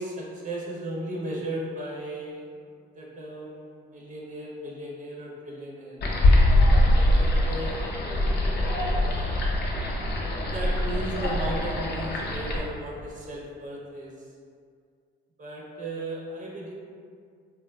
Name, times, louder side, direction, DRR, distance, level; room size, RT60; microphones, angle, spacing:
voice 1, 0.0-2.6 2.9-6.0 7.0-8.0 8.9-9.5 10.5-14.3 15.4-16.7, right 1 dB, 40° right, -3 dB, 0.5 m, -36 dB
sound 1, 6.0-12.6, left 1 dB, 55° left, 0.5 m, -23 dB
2.7 x 2.2 x 2.3 m, 2.2 s
cardioid pair, 90°, 20 cm